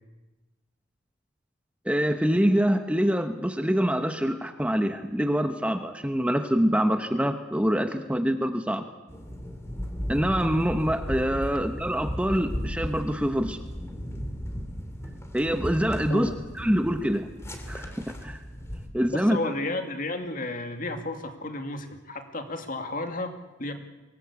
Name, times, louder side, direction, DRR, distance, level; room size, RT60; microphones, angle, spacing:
voice 1, 1.8-8.9 10.1-13.6 15.3-16.3 16.6-17.3 17.7-18.4 18.9-19.4, equal, 5° right, 7 dB, 1.0 m, -25 dB
sound 1, 9.1-18.9, equal, 15° left, 2.6 m, -35 dB
voice 2, 19.1-23.7, left 2 dB, 45° left, 6 dB, 2.3 m, -32 dB
24.0 x 18.5 x 8.3 m, 1.1 s
head